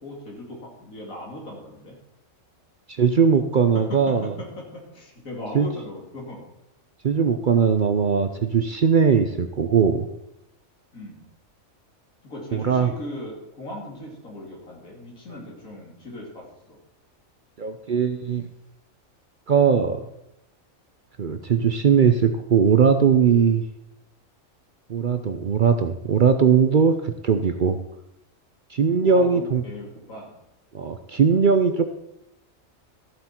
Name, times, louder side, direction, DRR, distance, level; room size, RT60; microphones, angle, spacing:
voice 1, 0.0-1.9 4.9-6.4 10.9-11.2 12.2-16.8 29.0-30.3, left 1 dB, 90° left, -2 dB, 3.2 m, -38 dB
voice 2, 2.9-4.3 5.5-5.7 7.0-10.1 12.5-12.9 17.6-18.5 19.5-20.0 21.2-23.6 24.9-27.8 28.7-29.6 30.7-31.9, right 6 dB, 50° right, 8 dB, 0.6 m, -20 dB
13.5 x 7.9 x 4.4 m, 0.86 s
omnidirectional pair, 1.4 m